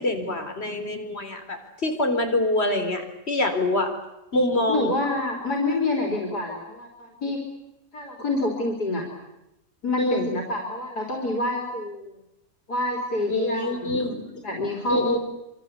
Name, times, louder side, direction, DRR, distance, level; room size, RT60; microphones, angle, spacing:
voice 1, 0.0-3.9 4.3-4.9 10.0-10.3 13.3-14.5 14.9-15.2, left 2 dB, 40° left, 4 dB, 4.2 m, -25 dB
voice 2, 4.7-7.4 7.9-9.0 9.8-12.1 12.7-13.9 14.4-15.2, left 2 dB, 90° left, 0 dB, 4.3 m, -27 dB
26.5 x 24.0 x 8.3 m, 0.90 s
omnidirectional pair, 1.7 m